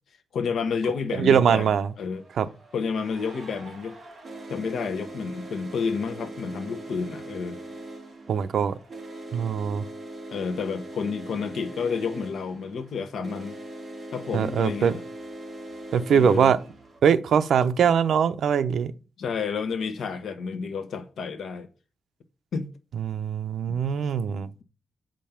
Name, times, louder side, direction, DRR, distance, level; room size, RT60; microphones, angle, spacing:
voice 1, 0.3-1.7 2.0-2.2 2.7-4.0 4.5-7.6 10.3-13.6 14.1-15.0 16.1-16.5 19.2-21.7 22.5-22.7 23.7-23.8, left 5 dB, 70° left, 1.1 m, -30 dB
sound 1, 0.9-1.0 2.0-17.0, right 2 dB, 30° right, 3.0 m, -41 dB
voice 2, 1.2-1.9 2.4-2.5 8.3-8.7 9.3-9.8 14.3-14.9 15.9-16.6 17.0-18.9 22.9-24.5, right 7 dB, 75° right, 0.6 m, -22 dB
7.5 x 5.3 x 5.8 m
wide cardioid pair, 155°, 0 cm